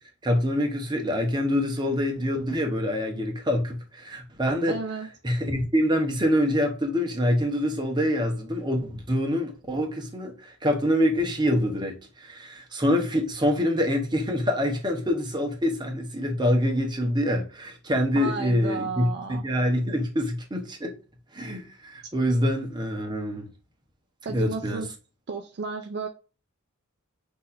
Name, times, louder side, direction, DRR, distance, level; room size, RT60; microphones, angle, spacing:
voice 1, 0.2-4.7 5.2-20.9 21.3-23.5 24.3-24.8, equal, 20° right, 1.0 m, -25 dB
voice 2, 4.7-5.1 18.1-19.4 24.2-24.9 25.3-26.1, right 4 dB, 50° right, 0.5 m, -33 dB
6.3 x 2.9 x 2.5 m
head